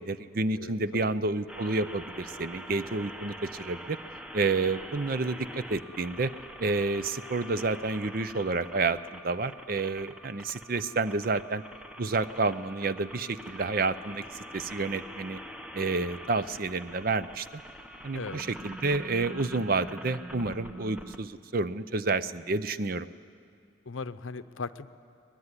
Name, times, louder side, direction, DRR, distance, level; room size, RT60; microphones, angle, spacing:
voice 1, 0.0-4.0 4.3-6.3 6.6-11.6 12.0-15.4 15.7-17.6 18.0-23.1, right 3 dB, 45° right, 14 dB, 0.6 m, -30 dB
voice 2, 0.6-1.2 18.1-18.4 23.9-25.0, left 4 dB, 80° left, 13 dB, 0.7 m, -38 dB
sound 1, 1.5-21.2, equal, 5° right, 0.8 m, -44 dB
23.5 x 19.5 x 9.7 m, 2.3 s
head